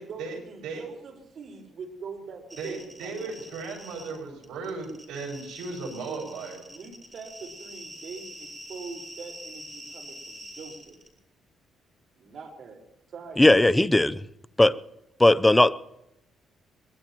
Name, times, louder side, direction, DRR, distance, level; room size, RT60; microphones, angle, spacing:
voice 1, 0.0-3.4 6.0-6.3 6.7-11.0 12.2-12.8 13.1-13.6, right 5 dB, 60° right, 3 dB, 4.7 m, -43 dB
sound 1, 2.5-4.2 4.4-11.1, equal, 10° right, 4.8 m, -45 dB
voice 2, 2.6-6.6, right 4 dB, 85° right, 1 dB, 6.2 m, -36 dB
voice 3, 13.4-14.2 14.6-14.7 15.2-15.7, left 1 dB, 10° left, 14 dB, 0.6 m, -18 dB
22.5 x 21.5 x 3.0 m, 0.88 s
cardioid pair, 90°, 0 cm